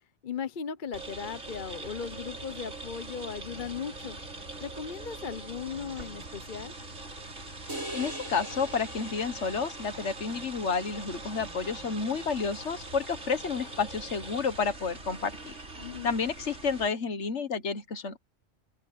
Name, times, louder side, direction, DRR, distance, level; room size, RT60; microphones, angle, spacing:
voice 1, 0.2-4.2 4.6-6.7 15.8-16.1, left 7 dB, 40° left, 1.0 m, -37 dB
sound 1, 0.9-16.9, right 2 dB, 65° right, 3.8 m, -42 dB
sound 2, 7.7-10.0, right 1 dB, 85° right, 5.5 m, -41 dB
voice 2, 7.9-15.5 16.0-18.2, left 5 dB, 60° left, 1.6 m, -30 dB
open air
omnidirectional pair, 1.4 m